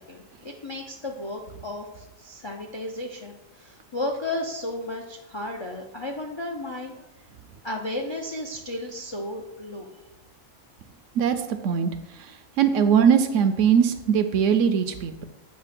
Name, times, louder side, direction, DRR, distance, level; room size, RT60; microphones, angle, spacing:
voice 1, 0.0-6.9 7.6-10.0, left 1 dB, 45° left, 1 dB, 0.3 m, -34 dB
voice 2, 12.6-15.2, right 7 dB, 70° right, 8 dB, 0.9 m, -20 dB
8.2 x 2.8 x 5.9 m, 0.92 s
omnidirectional pair, 1.4 m